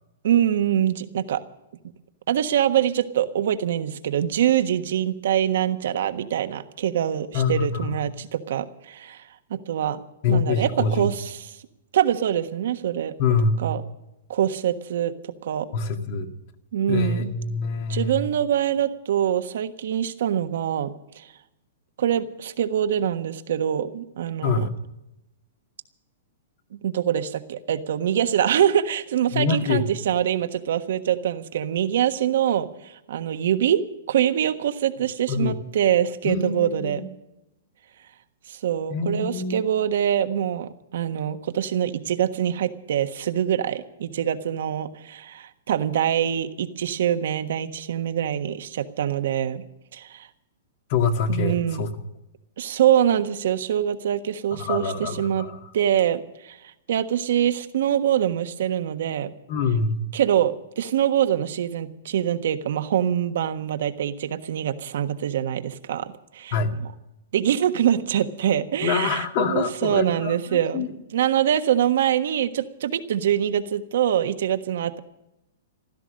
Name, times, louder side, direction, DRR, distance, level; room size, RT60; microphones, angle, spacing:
voice 1, 0.2-1.4 2.3-9.2 9.5-10.0 10.3-11.5 11.9-13.1 13.6-13.8 14.3-15.1 15.4-15.7 16.7-17.3 17.9-21.3 22.0-24.7 26.7-33.8 34.1-37.0 38.5-49.6 49.9-50.3 51.3-51.8 52.6-55.5 55.7-56.6 56.9-59.3 60.1-66.5 67.3-70.9 71.1-75.0, right 10 dB, 70° right, 9 dB, 1.4 m, -24 dB
voice 2, 7.3-8.0 10.2-11.1 13.2-13.7 15.7-16.3 16.9-18.2 24.4-24.7 29.3-29.9 35.3-35.6 36.2-37.0 38.9-39.6 50.9-51.9 54.5-55.7 59.5-60.0 66.5-66.7 68.8-70.9, left 4 dB, 50° left, 5 dB, 2.1 m, -25 dB
16.0 x 13.0 x 6.5 m, 0.90 s
hypercardioid pair, 145°, 0 cm